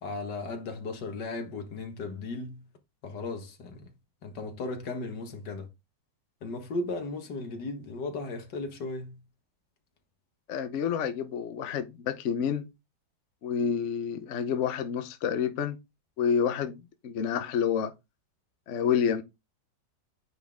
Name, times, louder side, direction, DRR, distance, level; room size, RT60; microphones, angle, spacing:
voice 1, 0.0-2.6 3.0-3.9 4.2-5.7 6.4-9.2, left 3 dB, 85° left, 2.1 m, -36 dB
voice 2, 10.5-12.7 13.4-15.8 16.2-16.8 17.0-17.9 18.7-19.2, left 7 dB, 55° left, 1.0 m, -28 dB
9.3 x 4.1 x 3.6 m
omnidirectional pair, 1.8 m